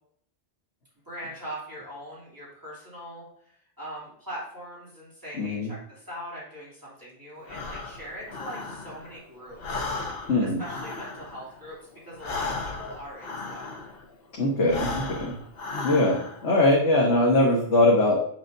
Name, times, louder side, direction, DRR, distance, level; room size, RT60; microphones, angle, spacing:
voice 1, 1.0-9.9 10.4-13.8, equal, 15° right, -8 dB, 2.8 m, -41 dB
voice 2, 5.3-5.7 10.3-10.6 14.4-15.4 15.8-18.2, left 2 dB, 80° left, -3 dB, 1.5 m, -21 dB
Breathing, 7.4-9.2 9.5-14.1 14.6-16.5, left 3 dB, 60° left, 1.1 m, -35 dB
7.6 x 6.3 x 2.6 m, 0.63 s
omnidirectional pair, 1.2 m